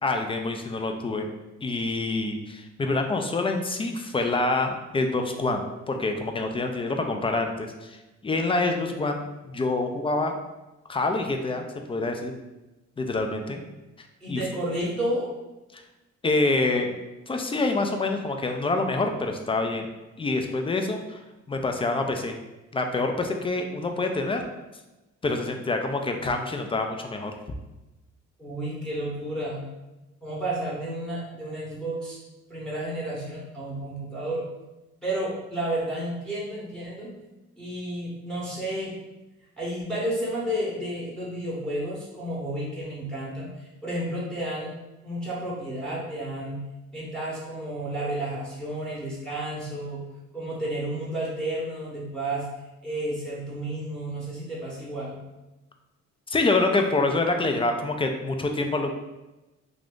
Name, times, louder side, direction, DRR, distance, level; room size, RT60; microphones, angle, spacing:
voice 1, 0.0-1.3 1.6-10.3 10.9-12.3 13.0-13.6 14.3-14.4 15.7-15.8 16.2-16.9 17.3-19.9 20.2-21.2 21.5-22.4 22.7-24.4 25.2-27.3 56.3-58.9, left 2 dB, 20° left, 4 dB, 0.3 m, -26 dB
voice 2, 14.2-15.3 28.4-29.6 30.2-32.2 32.5-34.4 35.0-37.1 37.6-39.0 39.6-44.7 45.0-46.6 46.9-50.0 50.3-52.5 52.8-55.2, right 1 dB, ahead, -8 dB, 0.8 m, -31 dB
2.5 x 2.4 x 3.5 m, 1.1 s
cardioid pair, 90°, 30 cm